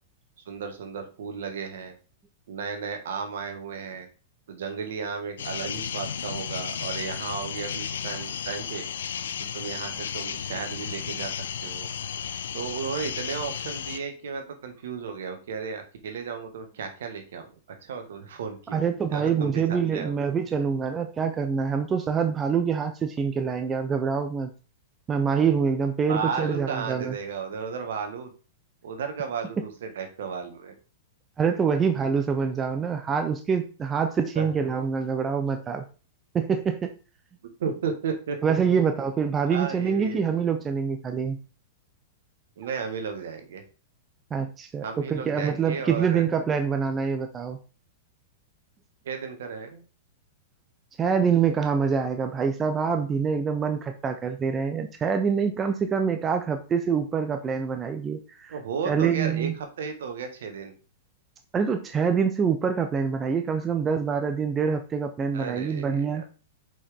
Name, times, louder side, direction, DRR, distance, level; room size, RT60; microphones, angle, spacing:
voice 1, 0.4-1.9 2.5-4.1 4.5-8.8 9.4-11.9 12.5-17.5 17.8-18.8 19.1-20.1 26.1-28.3 28.8-30.7 34.3-34.5 37.6-38.4 39.5-40.2 42.6-43.6 44.8-46.3 49.0-49.8 58.5-60.7 65.3-66.2, right 6 dB, 70° right, 6 dB, 1.6 m, -34 dB
sound 1, 5.4-14.0, left 8 dB, 75° left, 0.6 m, -33 dB
voice 2, 18.7-24.5 25.1-27.2 31.4-35.8 36.3-36.9 38.4-41.4 44.3-44.8 45.1-47.6 51.0-58.5 58.8-59.5 61.5-66.2, right 6 dB, 20° right, 7 dB, 0.8 m, -25 dB
6.3 x 5.4 x 3.7 m, 0.35 s
hypercardioid pair, 110°, 0 cm